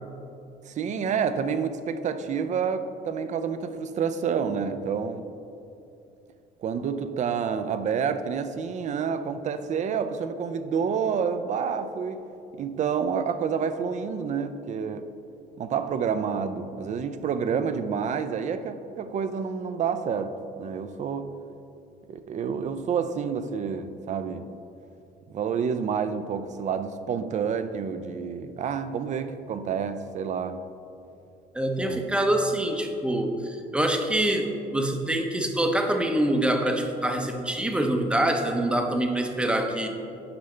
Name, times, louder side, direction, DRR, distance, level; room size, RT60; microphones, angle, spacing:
voice 1, 0.7-5.3 6.6-12.2 12.6-15.1 15.6-21.4 22.1-24.5 25.3-30.6 31.8-32.2, right 6 dB, 45° right, 10 dB, 0.4 m, -29 dB
voice 2, 31.5-39.9, right 1 dB, 5° right, 4 dB, 0.7 m, -25 dB
9.9 x 5.4 x 3.3 m, 2.7 s
cardioid pair, 110°, 17 cm